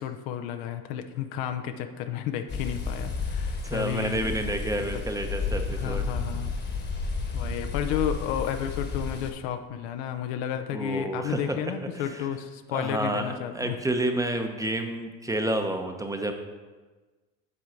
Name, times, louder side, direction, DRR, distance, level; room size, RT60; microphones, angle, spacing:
voice 1, 0.0-4.2 4.9-5.0 5.7-6.5 7.3-13.8, left 9 dB, 85° left, 7 dB, 0.7 m, -32 dB
sound 1, 2.5-9.3, left 4 dB, 35° left, 1.2 m, -32 dB
voice 2, 3.6-6.1 10.7-11.6 11.9-12.3 12.7-16.3, right 1 dB, 10° right, 5 dB, 0.8 m, -29 dB
7.8 x 3.8 x 5.8 m, 1.3 s
supercardioid pair, 90°, 31 cm